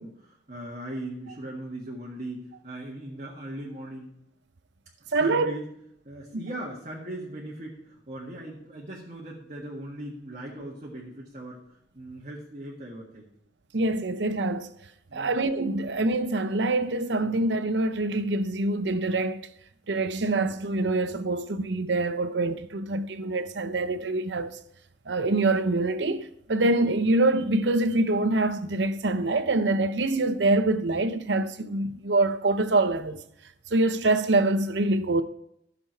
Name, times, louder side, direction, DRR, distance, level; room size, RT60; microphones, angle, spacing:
voice 1, 0.0-4.1 5.0-5.7 6.0-11.6 11.9-13.3 15.1-15.4 17.2-17.4, right 1 dB, 45° right, 1.7 m, -39 dB
voice 2, 5.1-5.5 6.3-6.4 13.7-14.7 15.1-19.5 19.9-24.6 25.1-33.2 33.7-35.2, right 2 dB, 90° right, 0.7 m, -25 dB
13.5 x 6.9 x 4.5 m
head